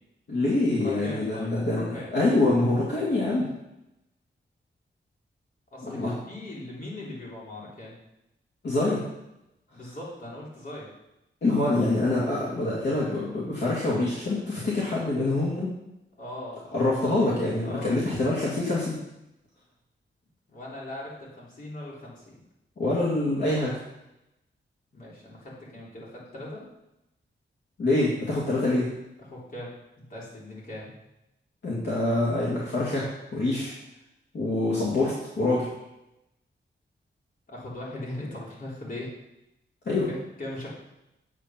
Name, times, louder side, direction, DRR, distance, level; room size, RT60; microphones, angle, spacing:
voice 1, 0.3-3.5 5.8-6.1 8.6-9.0 11.4-15.7 16.7-19.0 22.8-23.7 27.8-28.9 31.6-33.1 33.3-33.7 34.3-35.7 39.9-40.1, left 2 dB, 60° left, -6 dB, 2.3 m, -25 dB
voice 2, 0.8-2.2 2.6-2.7 5.7-8.0 9.7-10.9 16.2-18.0 20.5-22.4 24.9-26.6 29.2-30.9 37.5-39.1 40.1-40.7, left 1 dB, 45° left, -5 dB, 3.6 m, -40 dB
8.5 x 7.9 x 5.9 m, 0.90 s
wide cardioid pair, 165°, 20 cm